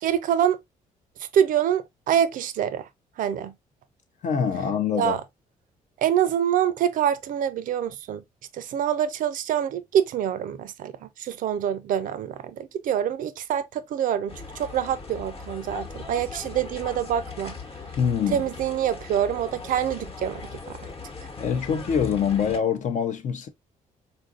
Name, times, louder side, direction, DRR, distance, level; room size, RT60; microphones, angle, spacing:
voice 1, 0.0-0.6 1.3-2.9 3.2-3.5 4.9-5.2 6.0-8.2 8.5-17.6 18.3-20.8, right 9 dB, 65° right, 0.4 m, -26 dB
voice 2, 4.2-5.2 18.0-18.4 21.4-23.5, left 7 dB, 55° left, 0.6 m, -24 dB
sound 1, 14.3-22.6, left 4 dB, 40° left, 1.0 m, -39 dB
4.0 x 2.5 x 2.3 m
cardioid pair, 85°, 15 cm